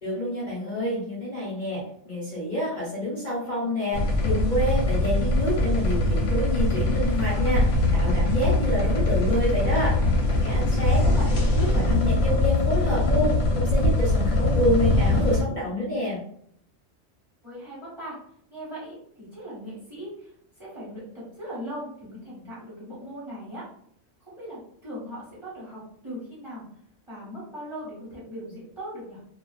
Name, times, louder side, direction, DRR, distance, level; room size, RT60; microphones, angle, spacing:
voice 1, 0.0-11.0 11.5-16.2, left 1 dB, 45° left, -7 dB, 0.9 m, -28 dB
sound 1, 3.9-15.4, left 2 dB, 80° left, 1.0 m, -22 dB
voice 2, 10.9-11.4 17.4-18.2 18.5-23.6 24.2-26.6 27.1-29.2, equal, 25° right, -7 dB, 1.1 m, -39 dB
2.4 x 2.3 x 2.3 m, 0.66 s
omnidirectional pair, 1.3 m